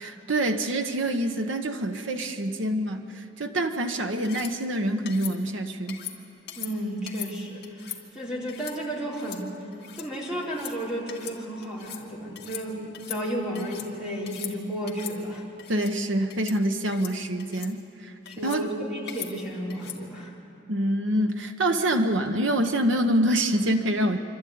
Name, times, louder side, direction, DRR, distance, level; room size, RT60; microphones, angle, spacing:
voice 1, 0.0-6.0 15.7-18.1 18.4-18.7 20.7-24.2, right 1 dB, 90° right, 5 dB, 1.1 m, -26 dB
sound 1, 4.2-4.5 5.1-5.3 5.9-6.2 6.5-6.7 7.1-7.3 7.6-8.0 8.5-8.8 9.1-9.4 9.7-10.1 10.4-10.7 11.1-11.4 11.6-12.0 12.4-12.6 12.9-13.9 14.2-14.5 14.9-15.2 15.6-15.9 16.3-16.6 16.9-17.1 17.4-17.7 18.3-18.6 19.1-19.3 19.7-20.0, left 11 dB, 55° left, 2.1 m, -39 dB
voice 2, 6.6-9.5 9.9-15.5 18.3-20.3, equal, 5° right, -6 dB, 4.1 m, -33 dB
27.0 x 12.5 x 9.5 m, 2.9 s
head